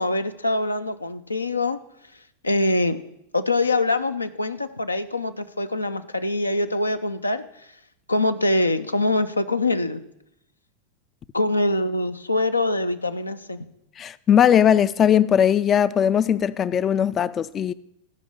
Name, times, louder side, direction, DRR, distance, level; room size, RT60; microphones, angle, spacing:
voice 1, 0.0-1.8 2.4-3.0 3.3-7.4 8.1-10.0 11.3-13.6, left 2 dB, 80° left, 0.5 m, -24 dB
voice 2, 14.0-17.7, left 9 dB, 25° left, 0.3 m, -19 dB
13.5 x 5.3 x 6.5 m
figure-of-eight pair, 90°, 0 cm